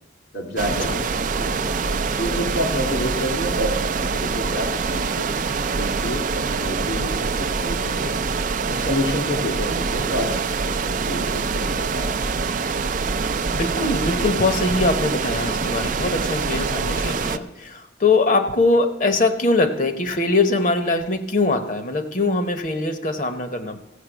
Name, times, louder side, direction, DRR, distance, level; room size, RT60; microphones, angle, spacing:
voice 1, 0.3-1.1 1.4-1.8 2.2-3.8 4.1-5.3 5.8-8.1 8.7-12.2, equal, 85° left, 2 dB, 2.8 m, -29 dB
sound 1, 0.6-17.4, right 4 dB, 45° right, 0.4 m, -25 dB
voice 2, 13.5-23.8, left 2 dB, 45° left, 8 dB, 0.9 m, -22 dB
15.0 x 7.3 x 6.1 m, 0.89 s
head